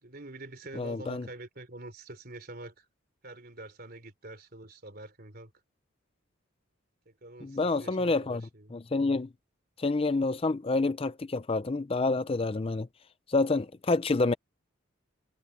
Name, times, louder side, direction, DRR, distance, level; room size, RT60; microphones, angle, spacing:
voice 1, 0.0-2.9 3.2-5.5 7.1-8.8, right 2 dB, 45° right, 3.7 m, -46 dB
voice 2, 0.8-1.3 7.4-9.3 9.8-12.9 13.3-14.3, left 3 dB, 30° left, 0.4 m, -28 dB
head